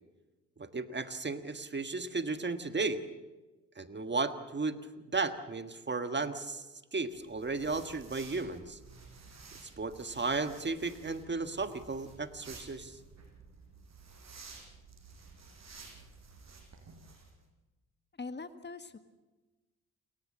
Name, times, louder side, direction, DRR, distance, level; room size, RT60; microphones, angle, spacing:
voice 1, 0.6-3.0 3.8-4.8 5.1-6.6 6.9-8.8 9.8-13.0, right 3 dB, 30° right, 9 dB, 1.6 m, -34 dB
sound 1, 7.1-17.3, right 4 dB, 45° right, 6.0 m, -53 dB
voice 2, 18.2-19.0, left 4 dB, 30° left, 9 dB, 1.6 m, -42 dB
29.0 x 14.5 x 7.5 m, 1.2 s
hypercardioid pair, 50°, 36 cm